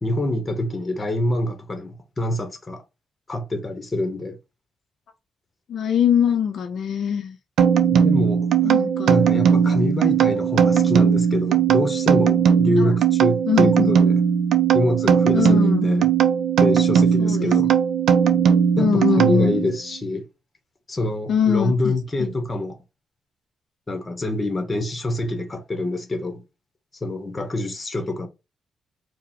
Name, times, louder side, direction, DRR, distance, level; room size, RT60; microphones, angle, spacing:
voice 1, 0.0-2.8 3.3-4.4 7.9-8.7 9.1-14.2 14.7-16.1 16.6-17.7 18.8-20.3 20.9-22.8 23.9-26.4 27.0-28.3, left 1 dB, 20° left, 0.8 m, -26 dB
voice 2, 5.7-7.4 8.6-9.1 12.8-12.9 13.5-14.0 15.3-15.9 17.2-17.5 18.8-19.7 21.3-21.9 22.2-22.3, left 8 dB, 60° left, 0.5 m, -22 dB
sound 1, 7.6-19.7, right 7 dB, 80° right, 0.5 m, -18 dB
4.7 x 2.0 x 3.6 m
cardioid pair, 135°, 0 cm